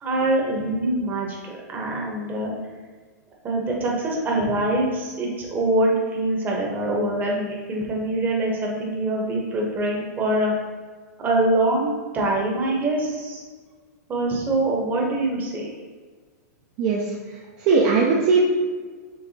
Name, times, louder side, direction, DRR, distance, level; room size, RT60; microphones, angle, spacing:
voice 1, 0.0-1.4 1.7-2.5 3.4-10.5 11.2-13.4 14.1-15.7, right 1 dB, 20° right, -2 dB, 0.9 m, -24 dB
voice 2, 16.8-17.2 17.6-18.4, right 4 dB, 40° right, -2 dB, 0.5 m, -19 dB
4.7 x 3.2 x 2.8 m, 1.5 s
hypercardioid pair, 140°, 9 cm